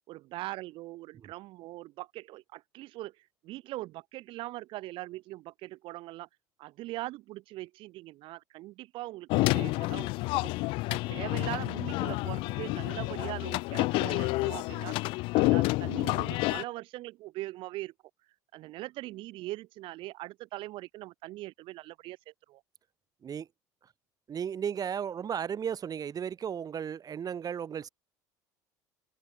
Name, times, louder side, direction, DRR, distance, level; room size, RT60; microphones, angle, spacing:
voice 1, 0.1-6.3 6.6-10.5 10.9-15.0 15.3-17.9 18.5-22.6, right 18 dB, 60° right, 5.6 m, -41 dB
sound 1, 9.3-16.6, left 23 dB, 60° left, 0.4 m, -29 dB
voice 2, 24.3-27.9, right 8 dB, 40° right, 5.4 m, -34 dB
hypercardioid pair, 70°, 10 cm